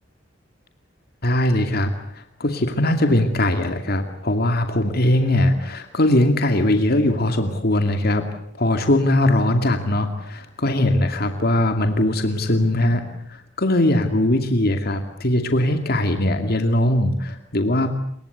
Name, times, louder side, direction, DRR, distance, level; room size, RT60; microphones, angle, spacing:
voice 1, 1.2-8.2 8.6-13.0 13.3-17.9, left 1 dB, 55° left, 6 dB, 2.4 m, -20 dB
27.5 x 23.5 x 8.0 m, 0.69 s
head